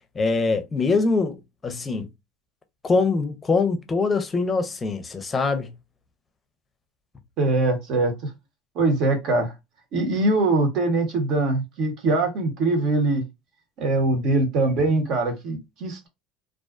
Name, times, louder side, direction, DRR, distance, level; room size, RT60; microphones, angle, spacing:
voice 1, 0.1-2.1 2.8-5.7, left 4 dB, 25° left, 0.6 m, -23 dB
voice 2, 7.4-8.3 8.7-9.5 9.9-13.2 13.8-16.1, right 2 dB, 60° right, 1.0 m, -22 dB
2.4 x 2.2 x 2.4 m
supercardioid pair, 90°, 0 cm